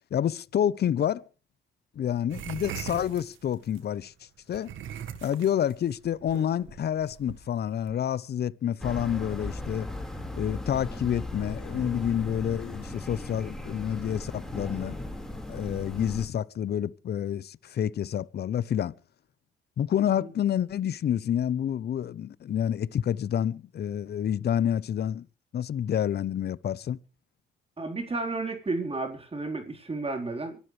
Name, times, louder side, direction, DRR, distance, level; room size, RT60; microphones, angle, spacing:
voice 1, 0.1-1.3 2.0-4.1 4.5-4.7 5.2-9.9 10.3-15.0 15.5-18.9 19.8-25.3 25.5-27.0, left 9 dB, 55° left, 0.8 m, -28 dB
sound 1, 2.3-3.8 4.5-7.9, right 9 dB, 80° right, 1.7 m, -41 dB
sound 2, 8.8-16.3, left 1 dB, 5° left, 4.6 m, -37 dB
voice 2, 27.8-30.6, right 3 dB, 30° right, 4.2 m, -32 dB
24.5 x 12.5 x 3.3 m
cardioid pair, 90°, 20 cm